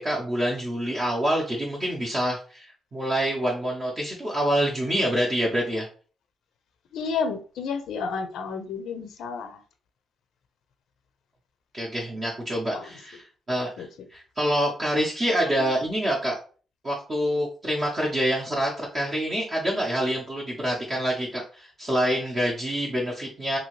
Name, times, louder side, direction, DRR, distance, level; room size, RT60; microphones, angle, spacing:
voice 1, 0.0-5.9 11.7-16.4 16.8-23.6, equal, 30° right, -3 dB, 0.6 m, -26 dB
voice 2, 6.9-9.6 12.7-12.9 13.8-13.9, left 5 dB, 85° left, 8 dB, 0.4 m, -31 dB
2.7 x 2.7 x 2.9 m, 0.38 s
cardioid pair, 145°, 0 cm